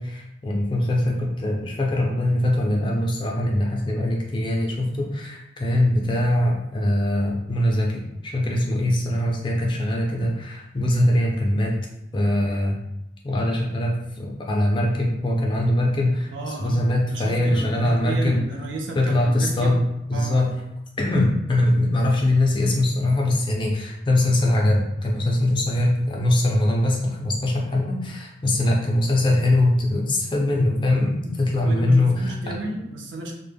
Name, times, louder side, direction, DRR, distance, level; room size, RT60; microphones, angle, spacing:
voice 1, 0.0-11.7 12.1-12.8 13.2-18.5 18.9-19.8 20.1-20.5 21.0-32.5, left 1 dB, 25° left, 0 dB, 0.4 m, -22 dB
voice 2, 16.3-16.8 17.1-19.8 20.1-20.4 31.6-33.3, right 2 dB, 80° right, 1 dB, 0.5 m, -33 dB
2.1 x 2.0 x 3.3 m, 0.84 s
head